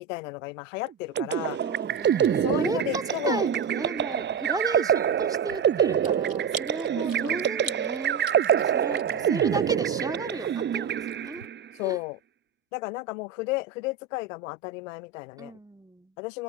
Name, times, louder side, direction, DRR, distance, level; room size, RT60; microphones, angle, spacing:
voice 1, 0.0-1.6 2.4-3.5 7.0-7.4 8.9-9.5 11.8-12.2 12.7-15.5 16.2-16.4, left 23 dB, 70° left, 0.6 m, -33 dB
sound 1, 1.2-11.6, right 9 dB, 30° right, 0.6 m, -26 dB
Chewing mastication, 1.2-11.5, right 3 dB, 90° right, 2.0 m, -46 dB
voice 2, 1.6-8.2 8.5-11.5 11.8-12.0 15.4-16.2, right 1 dB, 10° right, 2.4 m, -35 dB
open air
figure-of-eight pair, 45°, 40 cm